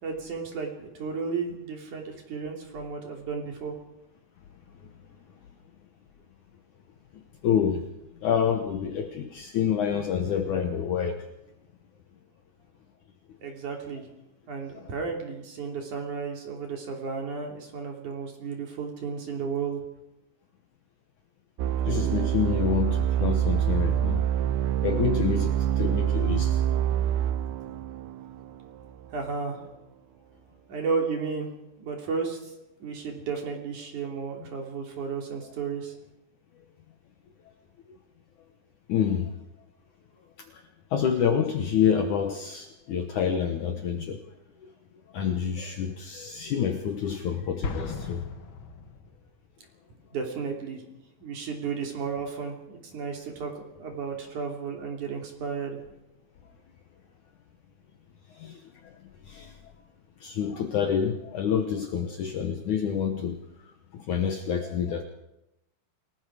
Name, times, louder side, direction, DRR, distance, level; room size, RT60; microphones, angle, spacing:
voice 1, 0.0-3.7 13.4-14.0 14.5-19.8 29.1-29.6 30.7-31.5 31.8-32.4 32.8-35.9 50.1-50.8 51.2-55.8, right 5 dB, 50° right, 2 dB, 4.4 m, -33 dB
voice 2, 7.4-7.8 8.2-11.2 14.8-14.9 21.9-24.3 24.8-26.6 38.9-39.3 40.5-40.6 40.9-44.2 44.6-44.7 45.1-48.2 58.4-58.6 59.3-59.5 60.2-63.4 63.9-65.0, left 8 dB, 65° left, 6 dB, 2.1 m, -27 dB
sound 1, 21.6-29.1, right 10 dB, 90° right, 3.0 m, -26 dB
Explosion, 47.6-49.5, left 4 dB, 90° left, 1.1 m, -36 dB
28.5 x 19.0 x 5.0 m, 0.88 s
omnidirectional pair, 4.7 m